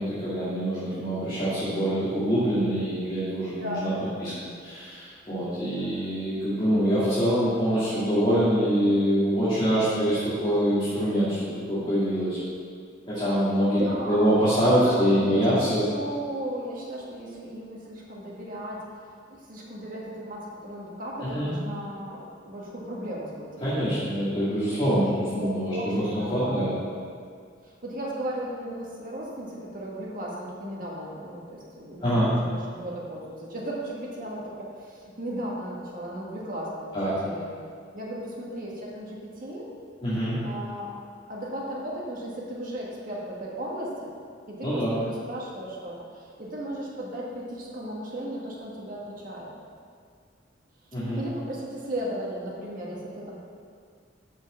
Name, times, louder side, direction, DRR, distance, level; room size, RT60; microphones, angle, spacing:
voice 1, 0.0-3.9 4.2-12.4 13.1-13.8 14.1-15.8 21.2-21.5 23.6-26.0 26.3-26.7 32.0-32.3 36.9-37.1 40.0-40.4 44.6-45.0 50.9-51.2, equal, 30° left, -12 dB, 2.1 m, -25 dB
voice 2, 3.6-4.6 5.8-5.9 9.9-10.3 13.7-14.4 14.8-18.8 19.3-23.6 25.0-27.0 27.6-37.0 37.2-37.5 37.9-39.7 40.4-41.0 41.3-44.1 44.5-49.5 51.1-53.4, right 1 dB, 50° right, -4 dB, 1.7 m, -36 dB
6.4 x 6.0 x 6.9 m, 2.1 s
head